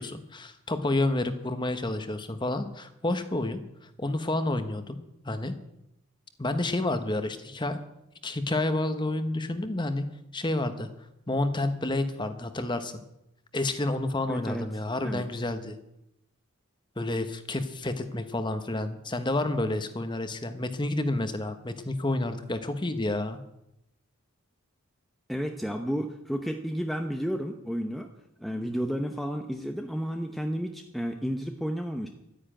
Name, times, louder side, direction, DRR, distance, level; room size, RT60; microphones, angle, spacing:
voice 1, 0.0-3.6 4.0-5.0 5.2-5.5 6.4-7.8 8.2-10.0 10.3-10.9 11.3-12.9 13.5-15.7 17.0-23.4, left 2 dB, 20° left, 9 dB, 1.1 m, -29 dB
voice 2, 14.3-14.7 15.0-15.2 25.3-28.1 28.4-32.1, equal, ahead, 3 dB, 0.8 m, -32 dB
12.5 x 10.0 x 9.0 m, 0.84 s
head